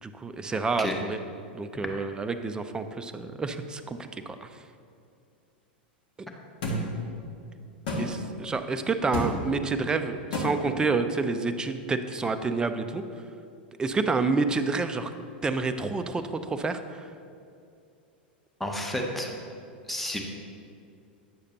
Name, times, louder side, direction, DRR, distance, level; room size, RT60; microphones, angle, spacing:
voice 1, 0.0-1.2 1.5-4.5 8.0-13.0 13.8-15.1 15.4-17.1, right 4 dB, 15° right, 8 dB, 0.4 m, -29 dB
sound 1, 6.6-6.8 7.9-8.0 9.1-9.3 10.3-10.5, left 1 dB, 65° left, 1.5 m, -28 dB
voice 2, 18.6-19.3 19.9-20.2, left 1 dB, 5° left, 1 dB, 0.9 m, -30 dB
9.5 x 6.5 x 2.9 m, 2.5 s
hypercardioid pair, 90°, 6 cm